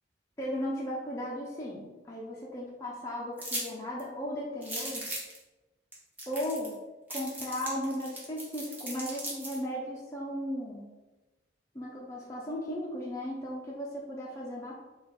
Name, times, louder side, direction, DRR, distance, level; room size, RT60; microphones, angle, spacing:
voice 1, 0.4-5.2 6.3-6.7 7.1-10.9 11.7-14.8, equal, 15° left, -5 dB, 0.6 m, -36 dB
sound 1, 3.4-3.7 4.0-4.1 4.6-5.4 5.9-6.0 6.2-6.7 7.1-9.6, right 1 dB, 10° right, 1.0 m, -37 dB
4.2 x 2.4 x 4.1 m, 1.1 s
head